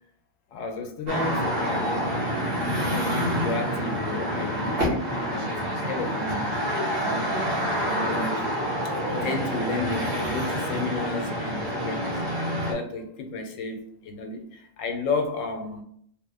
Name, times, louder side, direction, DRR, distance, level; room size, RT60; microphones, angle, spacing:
voice 1, 0.5-2.0 2.6-3.1 3.4-6.5 7.0-8.5 9.1-12.2 12.7-15.8, left 3 dB, 80° left, 5 dB, 1.0 m, -33 dB
sound 1, 1.1-12.7, equal, 80° right, 1.2 m, -27 dB
3.0 x 2.1 x 3.4 m, 0.66 s
omnidirectional pair, 1.3 m